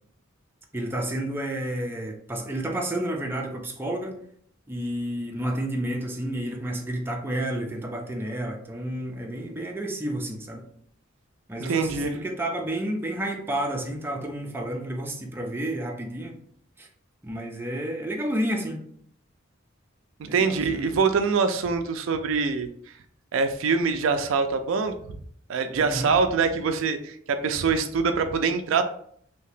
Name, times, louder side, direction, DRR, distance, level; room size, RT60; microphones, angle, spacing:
voice 1, 0.7-4.2 4.7-10.6 11.5-16.3 16.8-16.9 17.2-18.8 20.2-20.9 25.8-26.1, right 1 dB, 10° right, 1 dB, 0.5 m, -30 dB
voice 2, 11.6-12.1 20.3-22.7 23.3-25.2 25.5-28.8, right 5 dB, 70° right, 8 dB, 0.4 m, -24 dB
2.8 x 2.7 x 3.3 m, 0.64 s
head